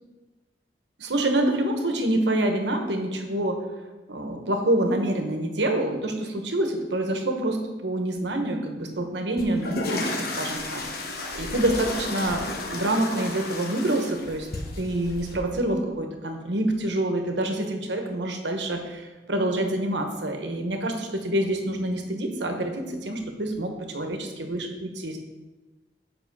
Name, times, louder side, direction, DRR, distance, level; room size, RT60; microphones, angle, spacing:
voice 1, 1.0-3.6 4.1-10.8 11.3-14.5 14.8-25.2, right 1 dB, 85° right, 4 dB, 1.2 m, -27 dB
sound 1, 9.4-15.4, left 2 dB, 60° left, 1.2 m, -33 dB
7.6 x 5.4 x 5.4 m, 1.2 s
head